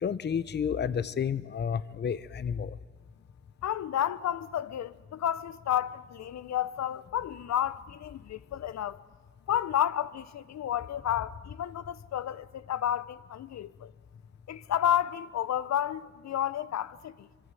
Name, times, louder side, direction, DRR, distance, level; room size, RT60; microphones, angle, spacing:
voice 1, 0.0-2.8, left 7 dB, 35° left, 0.9 m, -31 dB
voice 2, 3.6-9.0 9.5-13.9 14.5-17.3, left 11 dB, 60° left, 1.1 m, -31 dB
25.5 x 24.0 x 9.2 m
cardioid pair, 90°, 30 cm